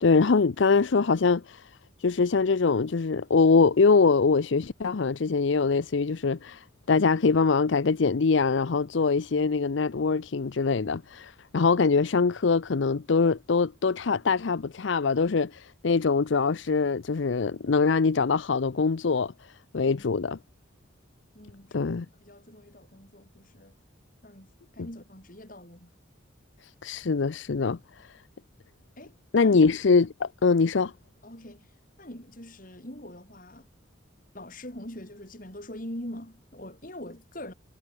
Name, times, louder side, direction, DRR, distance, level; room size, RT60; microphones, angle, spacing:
voice 1, 0.0-1.7 2.0-19.3 19.7-20.4 21.7-22.0 26.8-27.8 29.3-30.9, left 4 dB, 70° left, 0.6 m, -23 dB
voice 2, 21.3-23.7 24.2-25.9 29.0-29.6 31.2-31.7 32.0-33.7 34.3-37.5, left 1 dB, 45° left, 4.9 m, -43 dB
head